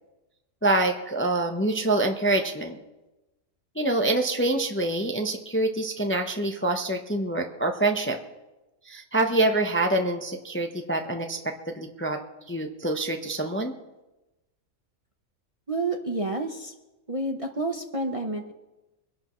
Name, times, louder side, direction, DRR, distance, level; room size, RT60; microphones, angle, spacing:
voice 1, 0.6-2.8 3.8-8.2 8.9-12.2 12.5-13.7, right 2 dB, 10° left, 4 dB, 0.7 m, -26 dB
voice 2, 15.7-16.7 17.1-18.5, right 2 dB, 30° right, 3 dB, 0.8 m, -29 dB
23.5 x 11.5 x 3.1 m, 1.0 s
omnidirectional pair, 1.4 m